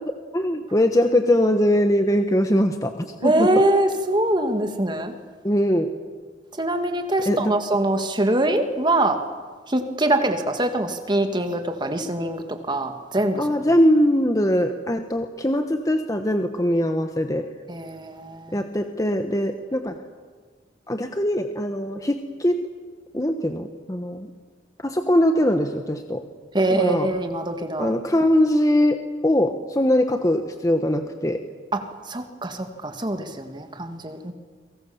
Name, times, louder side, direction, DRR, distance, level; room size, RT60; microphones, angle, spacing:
voice 1, 0.3-3.5 5.4-5.9 7.2-7.5 13.4-17.4 18.5-20.0 20.9-22.6 23.1-24.3 24.8-26.2 26.7-27.1 27.8-31.4, left 1 dB, 20° left, 6 dB, 1.2 m, -21 dB
voice 2, 3.2-5.1 6.6-9.2 9.7-13.4 17.7-18.6 26.5-27.9 31.7-34.3, right 1 dB, 25° right, 6 dB, 2.1 m, -23 dB
29.5 x 23.5 x 7.1 m, 1.5 s
head